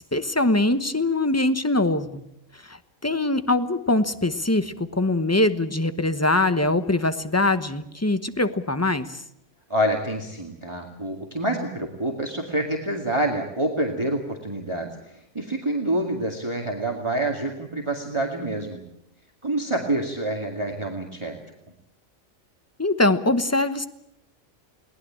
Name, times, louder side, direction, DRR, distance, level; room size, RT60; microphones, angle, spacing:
voice 1, 0.0-2.2 2.7-9.2 22.8-23.9, left 2 dB, 15° left, 11 dB, 0.9 m, -23 dB
voice 2, 9.7-18.8 19.4-21.4, right 1 dB, 20° right, 1 dB, 2.2 m, -27 dB
22.0 x 19.0 x 8.7 m, 0.79 s
omnidirectional pair, 1.4 m